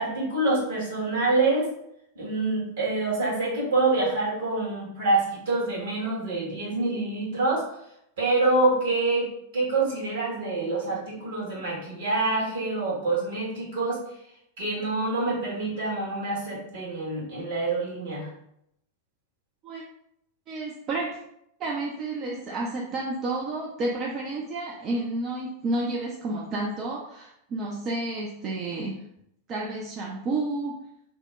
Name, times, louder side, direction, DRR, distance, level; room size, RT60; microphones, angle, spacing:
voice 1, 0.0-1.7 2.1-7.6 8.2-9.3 9.5-14.0 14.6-18.3, right 2 dB, 60° right, -5 dB, 1.4 m, -26 dB
voice 2, 20.5-21.2 21.6-29.0 29.5-30.8, right 2 dB, 35° right, -3 dB, 0.4 m, -30 dB
2.9 x 2.1 x 3.5 m, 0.76 s
figure-of-eight pair, 90°, 0 cm